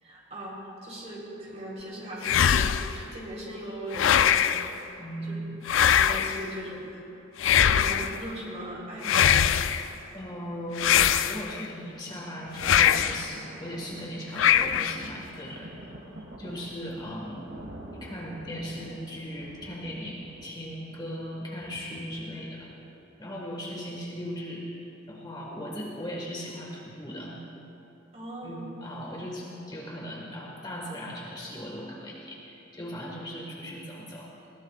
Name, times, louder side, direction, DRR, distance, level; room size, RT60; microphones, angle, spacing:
voice 1, 0.0-4.6 4.9-5.4 5.9-7.0 7.7-9.5 28.1-28.6, equal, 35° right, -4 dB, 3.7 m, -39 dB
sound 1, 2.2-3.0 3.9-4.7 5.7-6.5 7.4-8.2 9.0-9.9 10.8-11.7 12.6-13.3 14.4-15.1, left 9 dB, 75° left, 0.4 m, -22 dB
voice 2, 5.0-5.6 10.1-15.9 16.4-17.5 18.0-22.7 23.2-24.6 25.1-27.4 28.4-34.3, equal, 20° left, -2 dB, 1.6 m, -38 dB
Thunder, 12.1-23.1 23.8-23.9, right 1 dB, 70° right, 1.7 m, -46 dB
20.0 x 17.0 x 2.4 m, 2.9 s
head